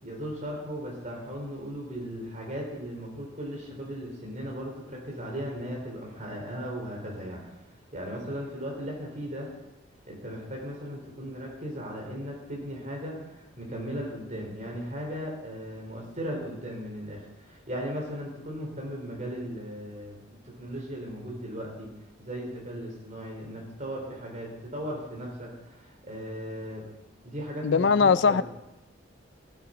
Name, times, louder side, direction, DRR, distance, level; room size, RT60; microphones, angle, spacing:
voice 1, 0.0-7.4 7.9-9.5 10.1-21.9 22.2-26.8 27.2-28.4, equal, 40° right, 3.9 m, -37 dB
voice 2, 27.6-28.4, left 5 dB, 60° left, 0.4 m, -20 dB
17.0 x 8.5 x 5.2 m
head